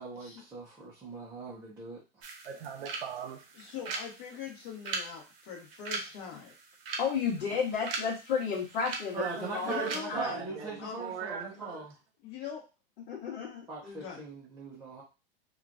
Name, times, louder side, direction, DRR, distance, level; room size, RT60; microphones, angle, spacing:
voice 1, 0.0-2.2 9.1-11.9 13.7-15.0, right 3 dB, 10° right, 0.6 m, -41 dB
sound 1, 2.2-10.0, right 4 dB, 65° right, 0.9 m, -41 dB
voice 2, 2.4-3.4 9.2-11.8, right 8 dB, 85° right, 0.5 m, -39 dB
voice 3, 3.5-6.5 9.6-11.0 11.5-11.6 12.2-12.6 13.8-14.2, left 7 dB, 40° left, 1.1 m, -42 dB
voice 4, 7.0-10.4 13.1-13.7, left 6 dB, 60° left, 1.1 m, -33 dB
3.0 x 2.4 x 2.5 m
hypercardioid pair, 140°, 30 cm